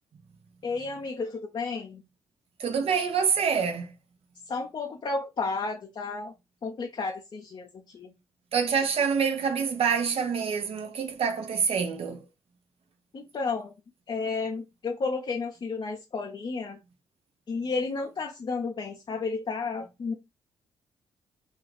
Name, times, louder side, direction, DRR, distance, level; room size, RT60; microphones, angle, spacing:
voice 1, 0.6-2.0 4.5-6.3 6.6-8.1 13.1-13.7 14.1-16.8 17.5-20.1, left 4 dB, 40° left, 0.6 m, -32 dB
voice 2, 2.6-3.9 8.5-12.2, right 6 dB, 60° right, 0.7 m, -26 dB
2.4 x 2.4 x 3.2 m
hypercardioid pair, 50°, 12 cm